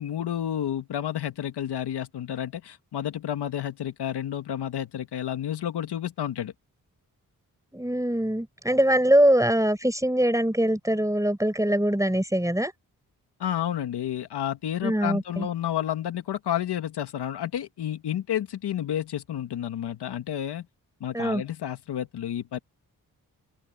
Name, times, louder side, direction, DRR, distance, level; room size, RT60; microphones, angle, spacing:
voice 1, 0.0-6.5 13.4-20.7 21.0-22.6, left 10 dB, 85° left, 2.1 m, -30 dB
voice 2, 7.7-12.7 14.8-15.5 21.1-21.4, right 1 dB, 10° right, 7.5 m, -23 dB
open air
supercardioid pair, 45°, 39 cm